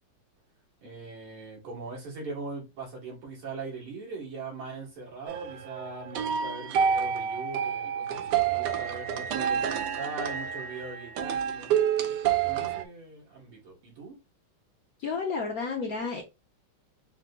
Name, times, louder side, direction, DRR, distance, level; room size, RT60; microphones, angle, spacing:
voice 1, 0.8-11.8 12.1-14.1, right 3 dB, 85° right, 3.2 m, -41 dB
sound 1, 5.3-12.8, right 8 dB, 70° right, 1.0 m, -29 dB
voice 2, 15.0-16.2, left 4 dB, 60° left, 0.9 m, -31 dB
5.9 x 2.1 x 3.7 m
omnidirectional pair, 2.4 m